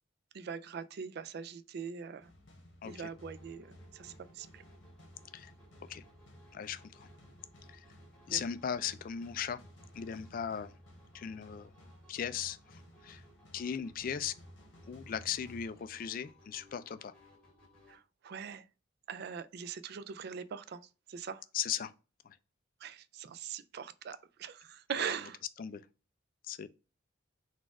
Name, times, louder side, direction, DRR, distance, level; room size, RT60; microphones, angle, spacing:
voice 1, 0.3-2.3 2.8-4.6 8.3-8.4 17.9-18.7 19.1-21.4 22.8-25.4, right 7 dB, 50° right, 0.3 m, -42 dB
sound 1, 2.2-16.4, equal, 60° left, 1.1 m, -56 dB
sound 2, 2.9-18.0, equal, 5° left, 1.8 m, -63 dB
voice 2, 6.5-7.1 7.7-7.8 8.3-9.6 9.9-10.7 11.1-11.7 12.1-13.2 13.5-14.3 14.9-17.1 21.5-21.9 22.2-22.4 25.0-25.1 25.6-25.8 26.4-26.7, left 8 dB, 45° left, 0.3 m, -38 dB
4.1 x 2.4 x 4.6 m
head